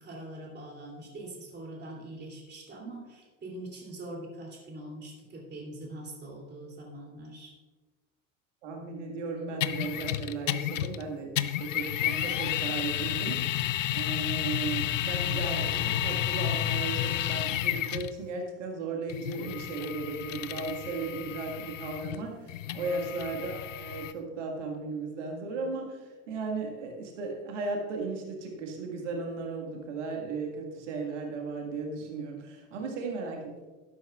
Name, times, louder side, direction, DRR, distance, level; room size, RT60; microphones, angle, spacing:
voice 1, 0.0-7.5 22.7-23.0, right 1 dB, 25° right, -1 dB, 3.0 m, -43 dB
voice 2, 8.6-13.4 13.9-33.7, right 3 dB, 65° right, 2 dB, 1.9 m, -36 dB
sound 1, 9.6-11.0 11.4-18.2 19.1-24.1, left 12 dB, 75° left, 0.5 m, -31 dB
12.0 x 12.0 x 2.4 m, 1.3 s
figure-of-eight pair, 65°, 38 cm